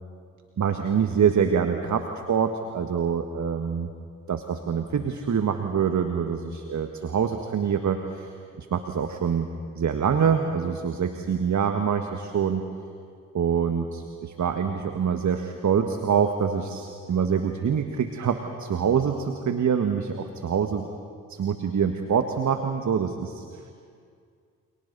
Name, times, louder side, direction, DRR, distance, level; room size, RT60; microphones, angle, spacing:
voice 1, 0.6-3.9 4.3-9.5 9.7-12.6 13.3-20.9 21.3-23.6, right 7 dB, 45° right, 6 dB, 1.6 m, -25 dB
29.0 x 28.0 x 4.1 m, 2.2 s
hypercardioid pair, 40°, 39 cm